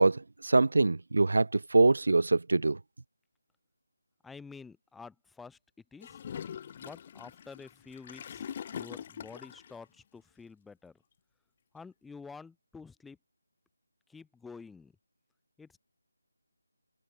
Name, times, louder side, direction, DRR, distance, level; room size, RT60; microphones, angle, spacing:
voice 1, 0.0-2.8, right 3 dB, 65° right, 0.4 m, -24 dB
voice 2, 4.2-5.6 5.9-6.2 6.8-8.5 8.7-11.0 11.7-13.2 14.1-14.9 15.6-15.8, left 5 dB, 5° left, 4.0 m, -49 dB
Gurgling / Toilet flush, 6.0-9.7, left 8 dB, 25° left, 1.1 m, -43 dB
figure-of-eight pair, 170°, 0 cm